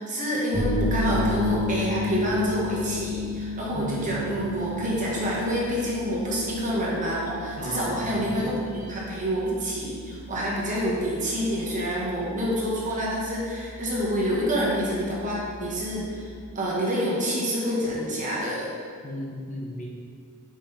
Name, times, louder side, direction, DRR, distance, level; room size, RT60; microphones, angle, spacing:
voice 1, 0.0-18.7, equal, 35° right, -5 dB, 1.6 m, -27 dB
sound 1, 0.5-16.5, left 1 dB, 10° right, 1.7 m, -33 dB
voice 2, 3.7-4.2 7.6-8.5 19.0-19.9, left 1 dB, 35° left, -2 dB, 0.9 m, -35 dB
6.0 x 5.4 x 4.1 m, 2.2 s
head